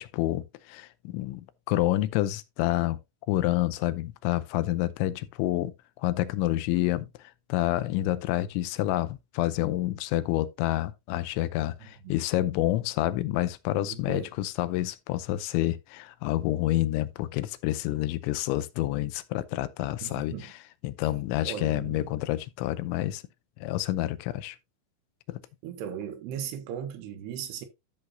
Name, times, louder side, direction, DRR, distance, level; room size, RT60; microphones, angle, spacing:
voice 1, 0.0-3.0 3.3-7.1 7.5-20.5 20.8-23.2 23.6-24.6 25.3-25.4, left 15 dB, 85° left, 3.1 m, -28 dB
voice 2, 11.8-12.2 13.9-14.3 20.0-20.5 21.4-22.1 25.6-27.7, right 8 dB, 75° right, 2.9 m, -37 dB
13.0 x 6.3 x 2.7 m
omnidirectional pair, 5.3 m